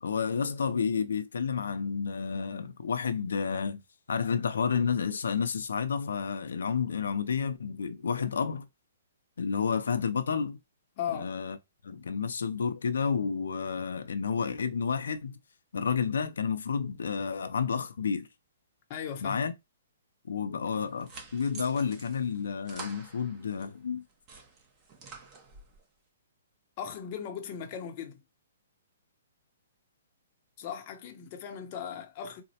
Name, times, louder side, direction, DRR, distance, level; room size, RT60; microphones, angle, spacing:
voice 1, 0.0-3.8 4.1-8.7 9.4-10.6 11.1-11.6 11.8-15.4 15.7-18.3 19.2-19.5 20.3-24.0, left 6 dB, 85° left, 0.4 m, -30 dB
voice 2, 11.0-11.3 18.9-19.4 26.8-28.2 30.6-32.4, left 8 dB, 30° left, 0.6 m, -37 dB
sound 1, 20.7-23.7 24.1-25.8, right 4 dB, 20° right, 0.7 m, -48 dB
4.0 x 2.0 x 2.7 m
hypercardioid pair, 160°, 0 cm